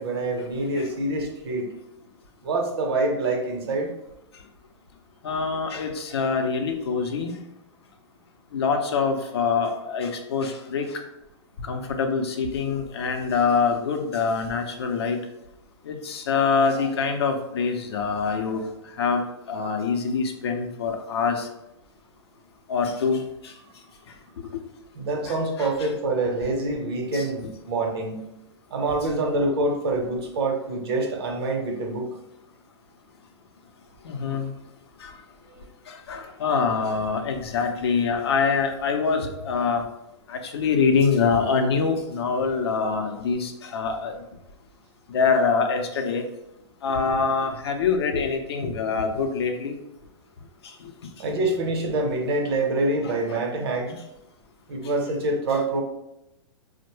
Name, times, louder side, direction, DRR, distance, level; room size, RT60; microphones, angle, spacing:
voice 1, 0.0-1.7 2.4-3.9 24.9-28.2 28.7-32.1 51.2-54.0 54.7-55.8, right 2 dB, 55° right, 2 dB, 0.8 m, -26 dB
voice 2, 5.2-7.3 8.5-11.0 11.7-15.2 15.9-18.6 19.0-21.5 22.7-23.5 25.3-25.9 27.1-27.3 34.0-34.5 35.0-35.2 35.9-39.8 40.3-44.1 45.1-46.2 46.8-49.8 53.3-53.4, left 5 dB, 60° left, 4 dB, 0.6 m, -25 dB
4.3 x 2.1 x 3.0 m, 0.87 s
figure-of-eight pair, 105°, 15 cm